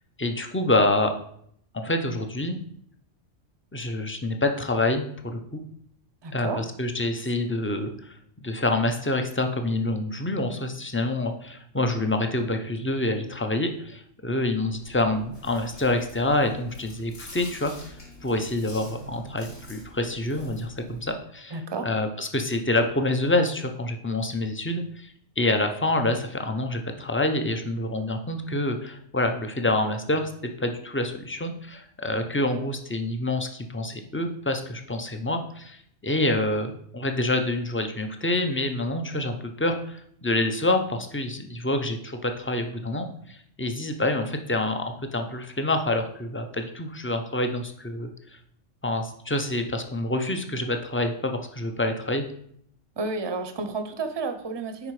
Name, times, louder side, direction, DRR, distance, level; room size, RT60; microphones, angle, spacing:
voice 1, 0.2-1.1 1.7-2.6 3.7-5.6 6.3-18.0 18.2-21.6 21.8-30.3 30.6-35.8 36.0-48.1 48.8-52.2, left 2 dB, 15° left, 5 dB, 0.5 m, -27 dB
voice 2, 6.2-6.6 21.5-21.9 53.0-54.9, right 3 dB, 25° right, 8 dB, 0.7 m, -31 dB
Chewing mastication, 14.7-21.1, left 1 dB, 75° left, 2.3 m, -46 dB
10.0 x 4.3 x 4.9 m, 0.67 s
omnidirectional pair, 1.3 m